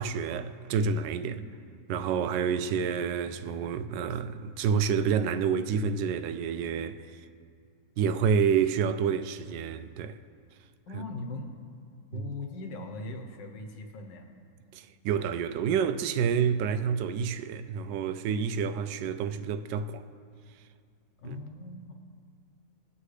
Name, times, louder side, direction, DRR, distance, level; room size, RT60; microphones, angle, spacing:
voice 1, 0.0-1.4 1.9-7.2 8.0-10.2 10.9-11.0 12.1-12.3 14.7-20.1 21.2-21.4, right 6 dB, 85° right, 1.2 m, -28 dB
voice 2, 10.9-11.6 12.1-14.3 21.2-21.9, left 2 dB, 85° left, 1.7 m, -40 dB
22.0 x 8.3 x 3.3 m
omnidirectional pair, 1.9 m